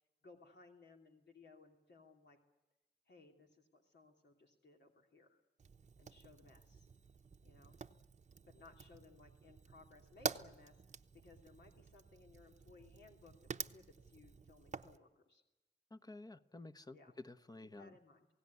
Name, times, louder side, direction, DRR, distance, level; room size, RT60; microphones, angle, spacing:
voice 1, 0.0-2.4 3.1-5.4 6.0-6.9 7.4-7.8 8.5-10.8 11.1-15.4 16.9-17.1 17.8-18.3, left 3 dB, 65° left, 2 dB, 3.0 m, -62 dB
Fire, 5.6-15.0, right 5 dB, 40° right, 0.9 m, -49 dB
voice 2, 15.9-18.0, left 2 dB, 20° left, 11 dB, 1.0 m, -52 dB
28.0 x 17.5 x 9.6 m, 1.0 s
wide cardioid pair, 90°, 19 cm